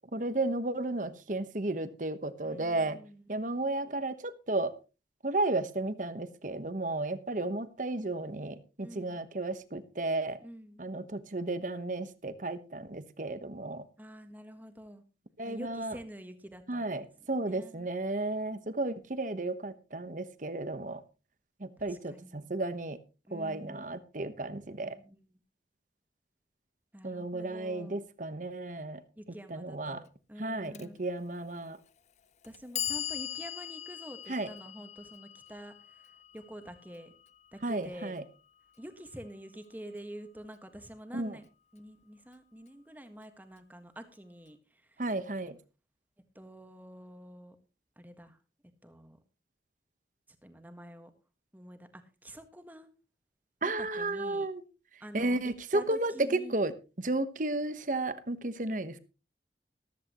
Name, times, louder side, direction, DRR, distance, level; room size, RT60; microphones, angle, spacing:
voice 1, 0.1-3.0 3.3-4.7 5.2-10.4 10.8-13.8 15.4-16.0 16.7-21.0 21.6-23.0 23.3-25.0 27.0-29.0 29.5-30.0 30.4-31.8 34.3-34.5 37.6-38.2 41.1-41.4 45.0-45.6 53.6-54.6 55.1-59.0, right 2 dB, 45° right, 1.1 m, -33 dB
voice 2, 2.4-3.3 8.8-9.2 10.4-10.8 14.0-15.0 15.4-17.0 17.4-17.9 21.8-22.5 23.3-24.0 24.6-25.4 26.9-28.0 29.1-31.0 32.4-37.1 37.5-38.1 38.8-41.5 41.7-45.0 46.3-47.5 48.0-48.4 48.8-49.2 50.4-51.1 51.5-52.9 53.6-54.5 55.0-56.6, equal, 10° right, 1.6 m, -48 dB
Clock, 30.7-30.9 31.8-31.9 32.4-38.5, left 10 dB, 40° left, 0.6 m, -41 dB
14.5 x 13.5 x 3.0 m
head